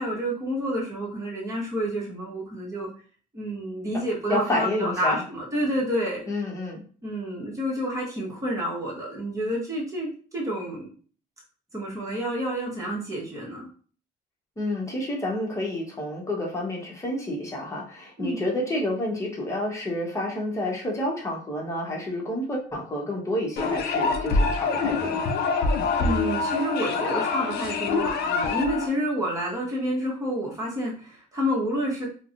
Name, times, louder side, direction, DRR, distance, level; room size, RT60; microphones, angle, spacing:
voice 1, 0.0-2.9 3.3-6.3 7.0-10.9 11.7-13.7 18.2-18.4 26.0-32.1, equal, 20° right, -4 dB, 1.2 m, -29 dB
voice 2, 4.3-5.2 6.3-6.8 14.6-25.2, left 1 dB, 15° left, -2 dB, 1.0 m, -29 dB
sound 1, 23.6-28.9, left 4 dB, 70° left, 0.5 m, -25 dB
3.4 x 2.2 x 2.5 m, 0.42 s
cardioid pair, 110°, 17 cm